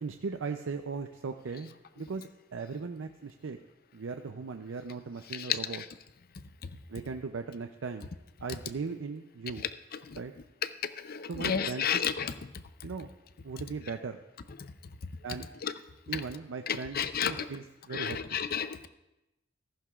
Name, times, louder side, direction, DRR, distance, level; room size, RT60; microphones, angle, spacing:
voice 1, 0.0-1.7 2.0-3.6 3.9-5.8 6.9-8.1 8.4-9.7 10.2-10.3 11.3-12.0 12.8-13.1 13.4-14.2 15.2-15.5 16.1-18.4, right 4 dB, 70° right, 6 dB, 0.5 m, -38 dB
voice 2, 11.0-12.3 15.6-15.7 16.1-16.2 16.7-17.5 17.9-18.9, left 7 dB, 50° left, 12 dB, 0.6 m, -31 dB
15.0 x 14.0 x 2.4 m, 0.94 s
head